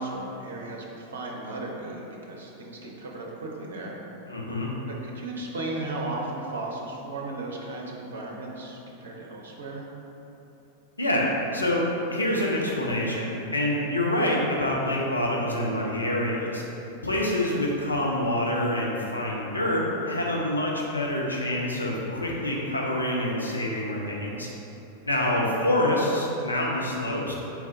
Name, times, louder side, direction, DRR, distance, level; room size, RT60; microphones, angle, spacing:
voice 1, 0.0-4.0 4.9-9.8 25.1-25.6, right 2 dB, 65° right, -1 dB, 0.6 m, -35 dB
voice 2, 4.3-4.7 11.0-11.8 12.1-16.6 17.0-24.5 25.0-27.3, left 1 dB, 80° left, -3 dB, 0.6 m, -26 dB
4.6 x 3.6 x 2.7 m, 3.0 s
figure-of-eight pair, 90°, 0 cm